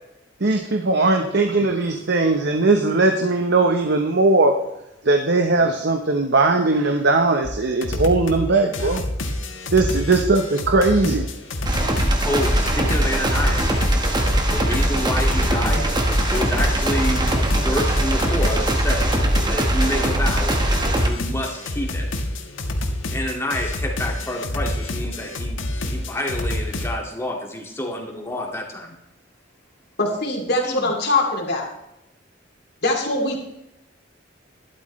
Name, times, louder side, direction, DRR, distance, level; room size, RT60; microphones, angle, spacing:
voice 1, 0.4-4.6 5.0-9.0 9.7-11.3, right 3 dB, 60° right, 4 dB, 1.0 m, -19 dB
sound 1, 7.4-7.5 7.8-8.4 8.7-26.9, left 1 dB, 80° left, 1.5 m, -28 dB
sound 2, 11.6-21.1, right 1 dB, 25° right, 1.5 m, -21 dB
voice 2, 12.2-13.8 14.5-15.9 16.3-19.2 19.5-20.6 21.0-22.1 23.1-28.9 30.7-30.9, left 1 dB, 15° left, 0 dB, 2.2 m, -28 dB
voice 3, 30.0-31.7 32.8-33.4, left 2 dB, 60° left, 0 dB, 2.9 m, -22 dB
12.5 x 12.0 x 3.3 m, 0.87 s
head